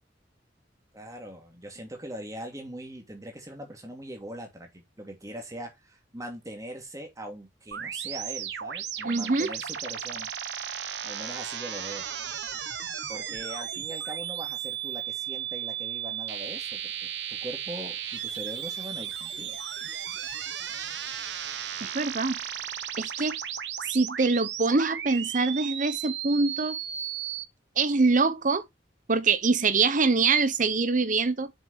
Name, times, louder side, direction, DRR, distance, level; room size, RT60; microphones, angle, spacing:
voice 1, 0.9-10.3 11.0-12.1 13.1-19.6, right 1 dB, 20° right, 2.6 m, -41 dB
sound 1, 7.7-27.4, right 9 dB, 85° right, 1.1 m, -35 dB
voice 2, 9.0-9.5 21.8-22.4 23.0-23.3 23.9-26.7 27.8-28.7 29.1-31.5, right 4 dB, 50° right, 0.9 m, -24 dB
7.3 x 6.2 x 3.2 m
head